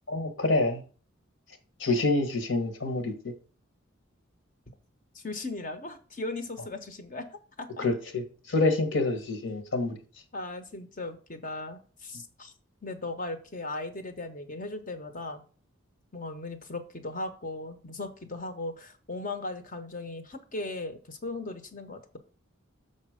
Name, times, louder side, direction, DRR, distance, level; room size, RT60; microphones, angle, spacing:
voice 1, 0.1-0.8 1.8-3.1 7.8-10.0, left 2 dB, 65° left, 8 dB, 1.5 m, -27 dB
voice 2, 5.1-7.9 10.3-12.5 12.8-15.4 16.1-22.2, left 2 dB, 40° left, 8 dB, 1.0 m, -37 dB
7.1 x 4.3 x 5.0 m, 0.38 s
head